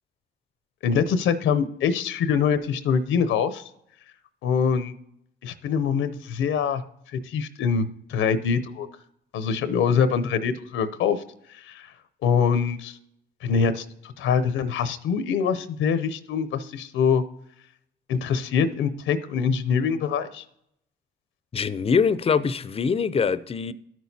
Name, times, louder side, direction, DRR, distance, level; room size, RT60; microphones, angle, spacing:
voice 1, 0.8-3.6 4.4-4.9 5.4-6.8 7.2-8.9 9.3-11.2 11.5-11.9 12.2-13.0 13.4-13.8 14.2-17.2 18.1-20.4, left 6 dB, 85° left, 0.6 m, -24 dB
voice 2, 21.5-23.7, left 5 dB, 30° left, 0.4 m, -23 dB
13.0 x 6.2 x 2.7 m
cardioid pair, 90°, 20 cm